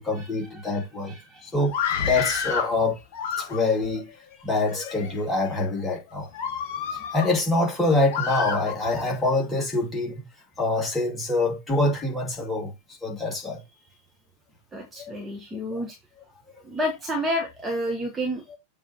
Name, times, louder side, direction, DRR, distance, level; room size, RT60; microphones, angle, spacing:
voice 1, 0.0-1.1 1.4-1.7 2.0-3.0 3.4-4.1 4.4-6.3 6.9-10.3 10.6-12.7 13.0-13.6 15.0-15.1 15.7-15.8 18.5-18.6, left 2 dB, 10° left, 2.7 m, -25 dB
voice 2, 1.1-1.4 14.7-15.9 16.7-18.4, equal, 15° right, 1.4 m, -30 dB
Screaming, 1.6-2.7 3.1-3.9 4.6-5.1 5.6-5.8 6.3-7.3 8.1-9.1, left 7 dB, 50° left, 1.6 m, -29 dB
7.3 x 3.5 x 4.4 m
figure-of-eight pair, 90°, 0 cm